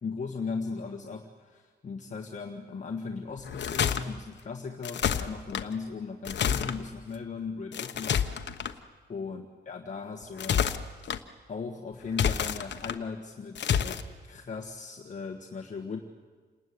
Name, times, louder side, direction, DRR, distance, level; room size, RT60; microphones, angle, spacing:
voice 1, 0.0-8.8 9.1-10.7 11.5-16.0, left 5 dB, 40° left, 2 dB, 1.6 m, -38 dB
sound 1, 3.4-4.0 4.8-5.6 6.2-6.8 7.7-8.7 10.2-11.2 12.1-13.0 13.6-14.0, left 8 dB, 70° left, 1.2 m, -28 dB
28.5 x 20.0 x 9.6 m, 1.5 s
wide cardioid pair, 160°, 19 cm